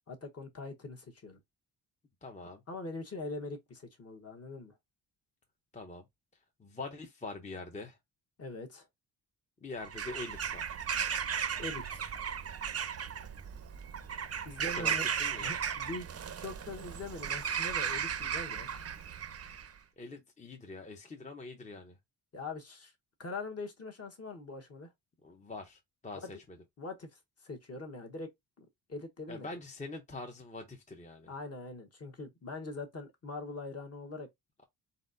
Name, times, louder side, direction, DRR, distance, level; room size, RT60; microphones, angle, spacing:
voice 1, 0.1-1.4 2.7-4.7 8.4-8.9 11.6-12.0 14.4-15.0 15.4-18.7 22.3-22.9 23.2-24.9 26.8-28.3 28.6-29.5 31.3-34.3, left 3 dB, 35° left, 1.1 m, -42 dB
voice 2, 2.2-2.6 5.7-6.0 6.6-8.0 9.6-10.8 14.7-15.6 20.0-22.0 25.2-26.6 29.3-31.3, left 3 dB, 15° left, 0.7 m, -44 dB
Bird vocalization bird call bird song / Crow, 9.8-19.7, right 7 dB, 35° right, 0.6 m, -36 dB
4.1 x 4.1 x 2.5 m
wide cardioid pair, 145°, 43 cm